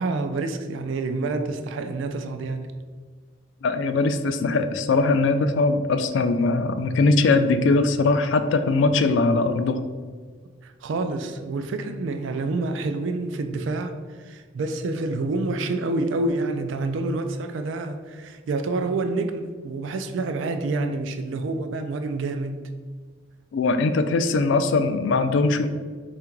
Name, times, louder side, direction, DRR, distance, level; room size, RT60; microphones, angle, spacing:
voice 1, 0.0-2.7 10.6-22.7, right 3 dB, 75° right, 7 dB, 0.3 m, -28 dB
voice 2, 3.6-9.9 23.5-25.7, left 3 dB, 75° left, 9 dB, 0.3 m, -21 dB
3.7 x 2.4 x 4.4 m, 1.5 s
head